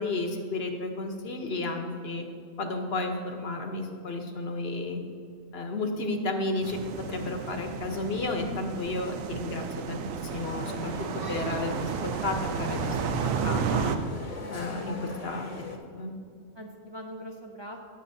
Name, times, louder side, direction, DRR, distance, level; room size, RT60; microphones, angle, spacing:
voice 1, 0.0-2.3 2.6-5.0 5.5-6.8 7.1-10.9 11.3-14.0 14.5-15.5 16.0-16.2, left 2 dB, 55° left, 4 dB, 1.0 m, -32 dB
sound 1, 6.6-14.0, right 6 dB, 85° right, 1.0 m, -32 dB
sound 2, 10.3-15.8, left 2 dB, 30° left, 0.9 m, -41 dB
voice 2, 14.4-15.7 16.5-17.8, equal, 35° right, 0 dB, 0.4 m, -44 dB
17.0 x 7.2 x 2.7 m, 2.2 s
omnidirectional pair, 1.4 m